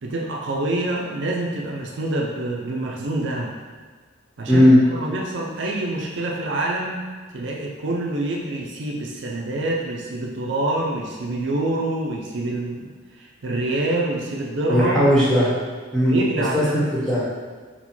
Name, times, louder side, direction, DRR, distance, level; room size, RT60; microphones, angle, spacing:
voice 1, 0.0-3.5 4.4-4.7 4.9-7.0 7.3-12.9 13.2-15.1 16.0-16.7, right 2 dB, 65° right, -1 dB, 0.5 m, -26 dB
voice 2, 14.7-15.5 15.9-17.2, equal, 5° left, -10 dB, 1.1 m, -17 dB
4.2 x 2.2 x 4.3 m, 1.5 s
head